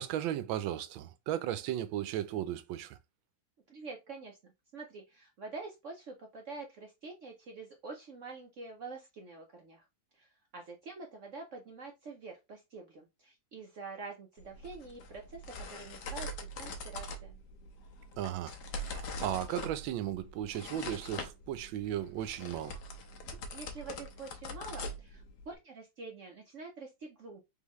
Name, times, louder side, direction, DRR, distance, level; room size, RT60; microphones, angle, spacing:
voice 1, 0.0-3.0 18.2-22.8, right 11 dB, 90° right, 1.3 m, -36 dB
voice 2, 3.7-9.8 10.1-16.3 16.5-17.4 23.3-27.4, right 3 dB, 65° right, 0.8 m, -46 dB
sound 1, 14.4-25.6, left 1 dB, 65° left, 1.3 m, -43 dB
3.7 x 3.6 x 3.0 m
omnidirectional pair, 2.1 m